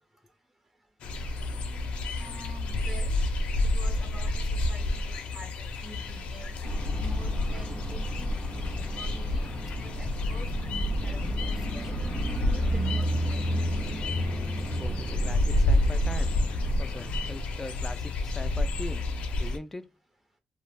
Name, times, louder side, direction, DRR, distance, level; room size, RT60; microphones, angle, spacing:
sound 1, 1.0-19.6, left 2 dB, 80° left, 0.4 m, -29 dB
voice 1, 2.2-3.2 3.6-6.5 6.9-12.2 12.5-13.9, right 1 dB, 20° right, 0.6 m, -47 dB
sound 2, 6.6-17.4, right 1 dB, 50° right, 0.9 m, -34 dB
voice 2, 14.8-16.4 16.8-19.0 19.4-19.9, left 2 dB, 15° left, 0.3 m, -40 dB
2.3 x 2.0 x 3.2 m
cardioid pair, 125°, 2 cm